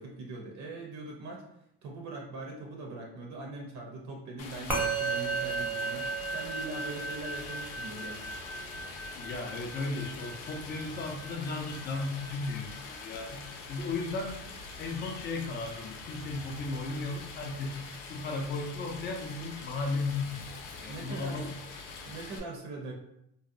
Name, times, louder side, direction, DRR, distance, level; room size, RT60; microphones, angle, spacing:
voice 1, 0.0-1.4 1.8-8.3 20.8-21.4 22.0-22.9, right 2 dB, 60° right, 0 dB, 0.6 m, -41 dB
Stream, 4.4-22.4, left 4 dB, 85° left, 0.5 m, -44 dB
Musical instrument, 4.7-14.2, right 3 dB, 5° right, 0.7 m, -36 dB
voice 2, 9.2-13.4 13.7-14.4 14.8-17.8 18.1-21.5, left 3 dB, 30° left, 2 dB, 0.5 m, -35 dB
2.6 x 2.0 x 2.5 m, 0.78 s
cardioid pair, 110°, 33 cm